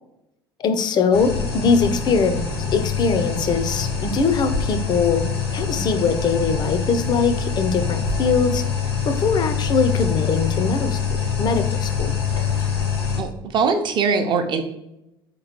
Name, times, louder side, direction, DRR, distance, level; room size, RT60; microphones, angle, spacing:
voice 1, 0.6-8.6 9.0-11.0 11.4-12.1, left 5 dB, 35° left, 9 dB, 0.4 m, -22 dB
sound 1, 1.1-13.2, left 6 dB, 80° left, 0.7 m, -25 dB
voice 2, 13.2-14.6, right 5 dB, 40° right, 6 dB, 0.6 m, -21 dB
4.7 x 3.0 x 2.9 m, 0.86 s
figure-of-eight pair, 60°, 13 cm